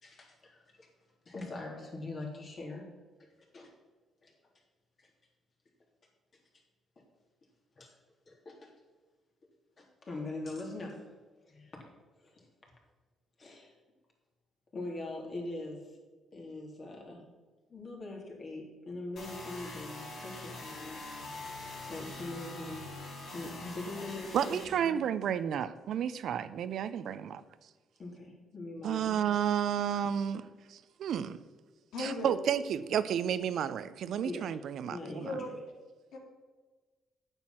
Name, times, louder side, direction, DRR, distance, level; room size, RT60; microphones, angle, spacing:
voice 1, 0.0-0.9 1.2-2.9 3.2-3.3 3.5-3.7 4.2-4.3 5.0-5.1 7.0-7.1 7.8-7.9 8.3-8.7 9.8-11.1 11.5-11.9 12.2-12.5 13.4-13.7 14.7-16.0 16.3-17.2 17.7-21.0 21.8-22.9 23.3-25.0 28.0-29.2 34.2-34.5 34.9-35.6, left 2 dB, 45° left, 0 dB, 3.2 m, -42 dB
sound 1, 19.2-24.6, left 2 dB, 65° left, 3.6 m, -44 dB
voice 2, 24.3-27.4 28.8-30.4 30.7-31.4 32.0-35.3, right 9 dB, 70° right, 14 dB, 0.6 m, -31 dB
voice 3, 31.9-32.4 35.2-35.5 36.1-36.2, left 2 dB, 85° left, 0 dB, 2.6 m, -36 dB
8.9 x 8.1 x 5.8 m, 1.3 s
cardioid pair, 90°, 0 cm